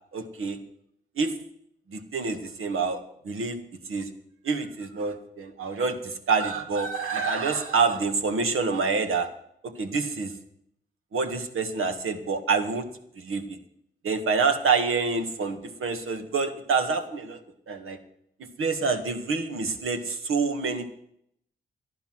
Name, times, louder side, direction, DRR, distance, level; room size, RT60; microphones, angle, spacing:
voice 1, 0.1-0.6 1.2-1.3 1.9-3.6 3.9-4.1 4.4-9.3 9.6-10.3 11.1-12.9 13.2-13.6 14.0-17.4 17.7-18.0 18.4-20.9, right 4 dB, 75° right, 7 dB, 1.8 m, -27 dB
13.0 x 11.5 x 6.1 m, 0.70 s
supercardioid pair, 40°, 21 cm